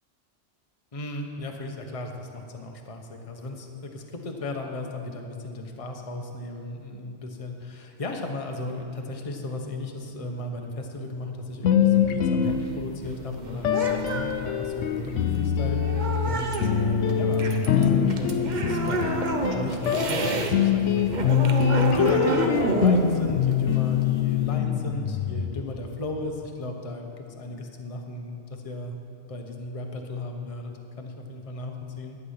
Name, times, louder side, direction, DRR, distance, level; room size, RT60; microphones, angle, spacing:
voice 1, 0.9-29.0 29.3-32.2, left 2 dB, 30° left, 3 dB, 0.9 m, -35 dB
sound 1, 11.6-13.1 13.6-25.9, left 8 dB, 85° left, 1.0 m, -24 dB
sound 2, 12.4-20.5 20.8-24.6, right 3 dB, 45° right, 0.9 m, -30 dB
11.5 x 8.3 x 5.6 m, 2.6 s
omnidirectional pair, 1.2 m